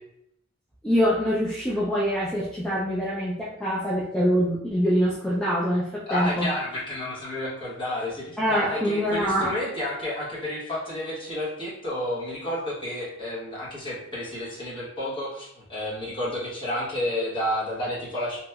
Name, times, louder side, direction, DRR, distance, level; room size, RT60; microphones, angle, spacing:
voice 1, 0.8-6.5 8.4-9.5, equal, 5° left, -7 dB, 0.3 m, -24 dB
voice 2, 6.1-18.4, left 1 dB, 20° left, -8 dB, 1.0 m, -31 dB
2.8 x 2.8 x 2.2 m, 0.77 s
head